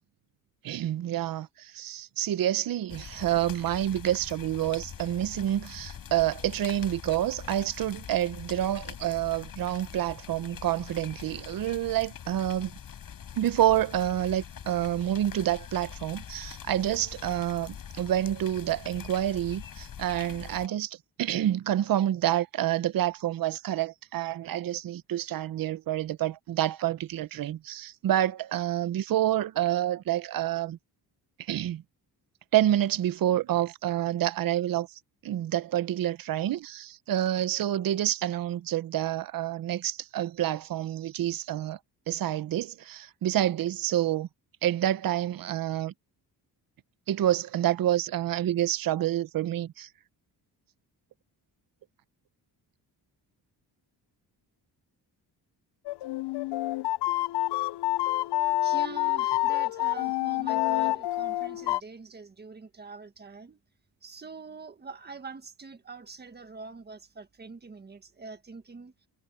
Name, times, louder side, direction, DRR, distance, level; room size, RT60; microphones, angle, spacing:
voice 1, 0.6-12.7 13.4-30.8 31.5-31.8 32.5-34.9 35.2-41.8 42.1-44.3 44.6-45.9 47.1-49.9, right 12 dB, 60° right, 0.8 m, -28 dB
sound 1, 2.9-20.7, left 8 dB, 55° left, 5.3 m, -43 dB
sound 2, 55.9-61.8, left 17 dB, 80° left, 0.5 m, -27 dB
voice 2, 58.6-63.6 64.0-68.9, right 4 dB, 25° right, 1.7 m, -44 dB
wide cardioid pair, 150°, 40 cm